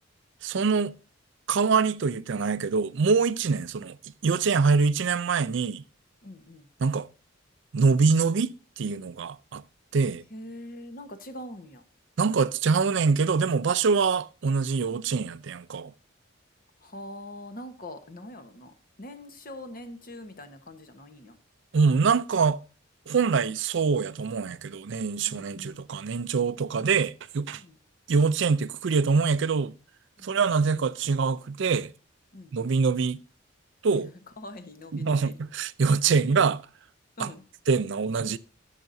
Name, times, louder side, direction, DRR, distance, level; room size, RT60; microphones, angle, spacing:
voice 1, 0.4-0.9 1.5-4.0 4.2-5.8 6.8-7.1 7.7-9.6 9.9-10.2 12.2-15.9 21.7-22.6 23.1-27.6 28.1-29.7 30.2-31.9 32.5-33.2 33.8-34.1 34.9-36.6 37.2-37.3 37.7-38.4, right 5 dB, 65° right, 0.4 m, -24 dB
voice 2, 6.2-6.7 10.3-11.8 16.8-18.7 19.0-21.4 25.3-25.8 27.6-27.8 30.2-30.5 32.3-32.6 34.4-35.3 37.2-37.4, left 1 dB, 45° left, 1.2 m, -43 dB
13.5 x 6.6 x 2.7 m
head